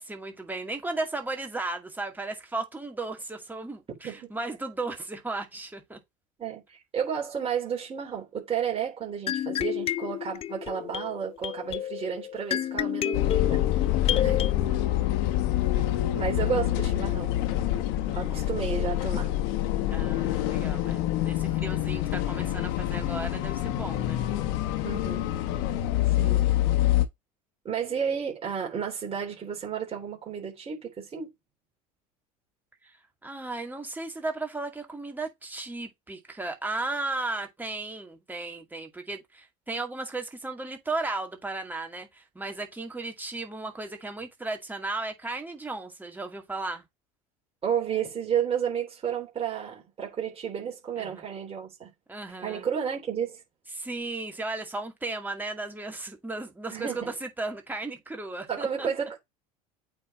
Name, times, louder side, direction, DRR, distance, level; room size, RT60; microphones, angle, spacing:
voice 1, 0.0-6.0 14.1-14.2 15.7-16.0 18.0-18.7 19.9-24.3 25.9-26.4 32.8-33.0 33.2-46.8 51.0-51.2 52.1-52.7 53.7-58.9, right 2 dB, 10° right, 2.2 m, -35 dB
voice 2, 6.4-13.9 14.2-14.5 16.1-17.3 18.1-19.3 24.8-25.2 26.2-26.4 27.6-31.3 47.6-51.9 52.4-53.4 56.7-57.1 58.5-59.2, right 8 dB, 30° right, 3.3 m, -32 dB
sound 1, 9.3-14.5, left 11 dB, 35° left, 0.3 m, -30 dB
sound 2, 13.1-27.1, left 13 dB, 75° left, 1.2 m, -26 dB
8.7 x 3.1 x 4.2 m
supercardioid pair, 90°, 18 cm